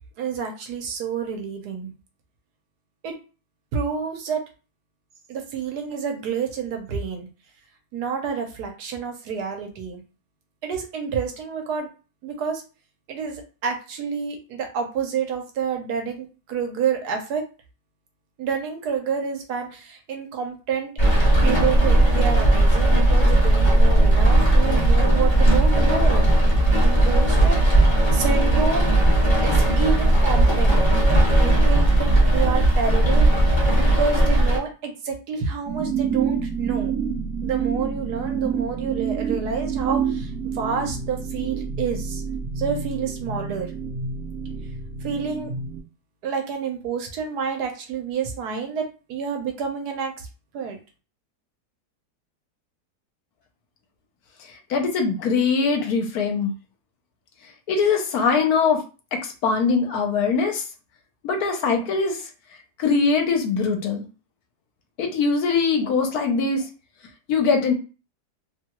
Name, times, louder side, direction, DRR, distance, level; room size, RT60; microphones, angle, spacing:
voice 1, 0.2-1.9 3.0-3.2 3.7-4.4 5.3-7.3 7.9-10.0 10.6-11.9 12.2-12.6 13.1-17.4 18.4-20.9 21.4-26.3 26.8-28.9 29.4-30.8 31.4-33.6 33.9-37.0 37.4-42.2 42.6-43.7 45.0-45.5 46.2-50.3 50.5-50.8, right 6 dB, 75° right, 4 dB, 1.2 m, -29 dB
Rain, 21.0-34.6, right 1 dB, 20° left, 0.7 m, -17 dB
sound 1, 35.7-45.8, right 6 dB, 60° right, 0.9 m, -28 dB
voice 2, 54.7-56.5 57.7-58.8 59.4-60.6 61.2-62.2 62.8-64.0 65.0-66.6 67.3-67.7, left 5 dB, 70° left, 4 dB, 1.1 m, -21 dB
2.9 x 2.3 x 2.9 m, 0.33 s
omnidirectional pair, 1.7 m